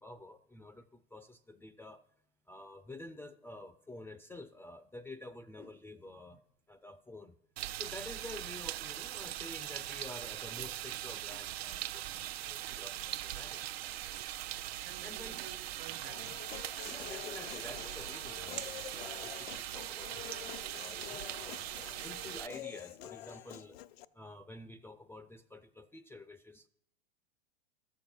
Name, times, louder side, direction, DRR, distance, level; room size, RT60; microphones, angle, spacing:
voice 1, 0.0-2.0 2.5-6.4 6.7-7.4 7.8-13.8 15.0-15.3 16.8-23.8 24.1-26.7, left 2 dB, 5° left, 0.5 m, -49 dB
sound 1, 7.6-22.5, right 13 dB, 75° right, 0.7 m, -41 dB
voice 2, 14.8-16.5, right 9 dB, 55° right, 1.3 m, -53 dB
Human voice, 16.0-24.1, left 13 dB, 75° left, 0.6 m, -48 dB
12.5 x 7.2 x 5.8 m
hypercardioid pair, 110°, 31 cm